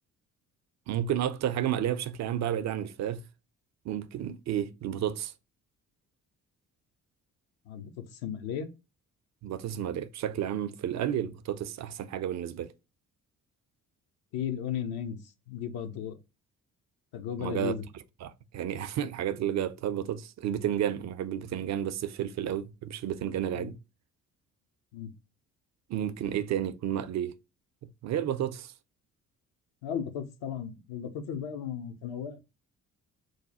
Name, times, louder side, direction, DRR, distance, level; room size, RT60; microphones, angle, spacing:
voice 1, 0.9-3.2 3.8-5.3 9.4-12.7 17.4-17.7 18.2-23.8 25.9-27.4 28.0-28.7, right 10 dB, 40° right, 0.5 m, -31 dB
voice 2, 7.6-8.7 14.3-15.2 15.5-16.2 17.1-17.8 23.5-23.7 24.9-25.1 29.8-32.4, left 8 dB, 60° left, 0.8 m, -35 dB
3.1 x 2.2 x 3.9 m
hypercardioid pair, 45°, 43 cm